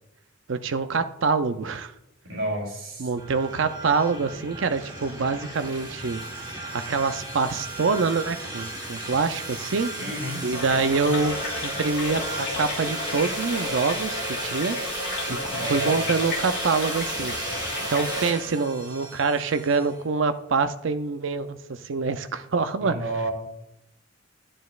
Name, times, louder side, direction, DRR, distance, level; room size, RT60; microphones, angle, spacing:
voice 1, 0.5-1.9 3.0-6.2 6.7-9.9 10.4-14.8 15.3-17.4 17.9-23.0, right 4 dB, 65° right, 10 dB, 0.5 m, -25 dB
voice 2, 2.2-3.1 9.9-10.5 15.5-16.1 22.8-23.3, right 1 dB, 85° right, -1 dB, 2.7 m, -30 dB
sound 1, 3.2-19.9, right 1 dB, 20° right, 1.5 m, -34 dB
sound 2, 10.5-18.4, left 2 dB, 55° left, 2.2 m, -33 dB
11.5 x 9.9 x 2.4 m, 0.87 s
head